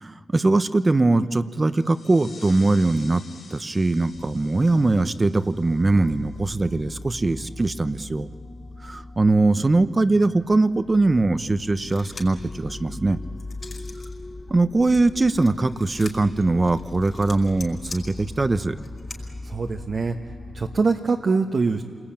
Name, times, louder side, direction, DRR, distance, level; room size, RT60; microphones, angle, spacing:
voice 1, 0.0-3.2 3.5-8.3 8.8-13.2 14.5-18.8, right 2 dB, 30° right, 12 dB, 0.9 m, -21 dB
sound 1, 1.7-7.0, left 4 dB, 70° left, 4.4 m, -49 dB
sound 2, 4.1-20.8, left 2 dB, 25° left, 2.8 m, -40 dB
sound 3, 11.8-12.5 12.9-14.1 14.5-19.2, left 3 dB, 40° left, 4.9 m, -42 dB
voice 2, 19.4-20.2 20.5-21.8, right 4 dB, 50° right, 2 dB, 1.2 m, -23 dB
28.5 x 21.0 x 8.9 m, 2.1 s
cardioid pair, 70°, 0 cm